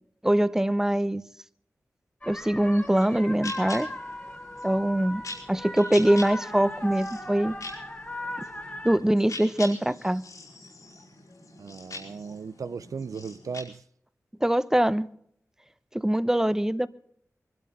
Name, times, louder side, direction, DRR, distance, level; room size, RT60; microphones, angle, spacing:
voice 1, 0.2-1.2 2.3-3.9 4.6-5.2 5.5-7.6 8.8-10.2 14.4-15.1 15.9-16.9, right 1 dB, 10° right, 0.8 m, -23 dB
sound 1, 2.2-9.0, left 1 dB, 20° left, 1.6 m, -37 dB
sound 2, 2.6-13.6, left 2 dB, 80° left, 5.0 m, -44 dB
voice 2, 11.6-13.8, right 5 dB, 90° right, 0.6 m, -37 dB
24.0 x 12.0 x 4.0 m
wide cardioid pair, 105°, 6 cm